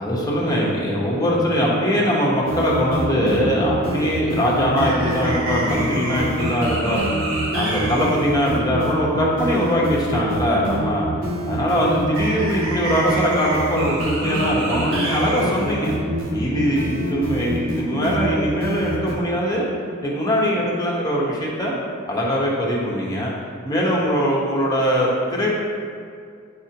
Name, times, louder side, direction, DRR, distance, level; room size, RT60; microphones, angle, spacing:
voice 1, 0.0-7.1 7.5-11.1 11.5-15.9 16.3-19.7 20.0-21.7 22.1-23.3 23.6-25.6, equal, 15° left, -4 dB, 1.2 m, -21 dB
sound 1, 2.5-19.2, right 1 dB, 65° right, 1.3 m, -25 dB
9.8 x 4.2 x 2.9 m, 2.3 s
head